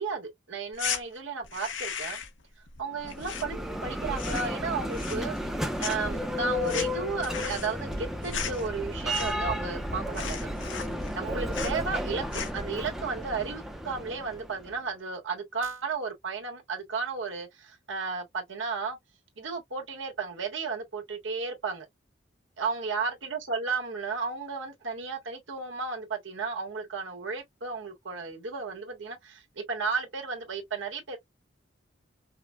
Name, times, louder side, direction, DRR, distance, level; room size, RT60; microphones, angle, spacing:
voice 1, 0.0-2.2 2.8-3.6 3.8-5.4 5.8-10.5 11.1-12.2 12.5-19.0 19.4-21.9 22.6-31.2, right 4 dB, 90° right, 1.4 m, -33 dB
sound 1, 0.7-1.0 1.4-2.4 2.7-3.9 4.1-4.6 4.9-5.5 5.8-9.6 9.8-9.9 10.1-11.2 11.5-11.8 12.2-12.7, left 7 dB, 85° left, 0.8 m, -36 dB
Bell, 2.9-14.7, equal, ahead, 0.5 m, -33 dB
5.0 x 2.1 x 2.3 m
head